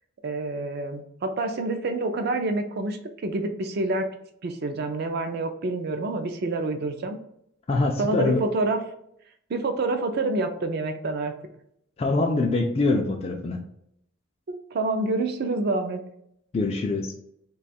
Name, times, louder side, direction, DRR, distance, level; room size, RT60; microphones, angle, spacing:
voice 1, 0.2-4.1 4.4-7.2 8.0-8.8 9.5-11.3 14.5-16.0, right 2 dB, 50° right, 7 dB, 0.4 m, -27 dB
voice 2, 7.7-8.4 12.0-13.6 16.5-17.1, left 3 dB, 30° left, 1 dB, 0.3 m, -24 dB
2.9 x 2.3 x 4.1 m, 0.76 s
head